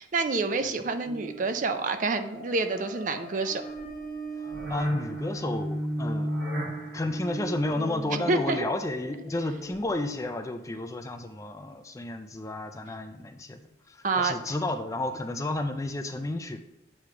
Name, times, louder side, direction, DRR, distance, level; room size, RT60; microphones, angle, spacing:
voice 1, 0.0-3.6 8.3-8.6 14.0-14.4, right 3 dB, 45° right, 8 dB, 0.4 m, -28 dB
sound 1, 1.0-10.1, right 1 dB, 60° right, 1.3 m, -36 dB
Wind instrument woodwind instrument, 2.0-5.1, left 1 dB, 55° left, 0.9 m, -50 dB
voice 2, 4.7-6.3 6.9-13.6 13.9-16.6, left 2 dB, 15° left, 7 dB, 0.4 m, -32 dB
8.5 x 3.1 x 4.8 m, 0.84 s
head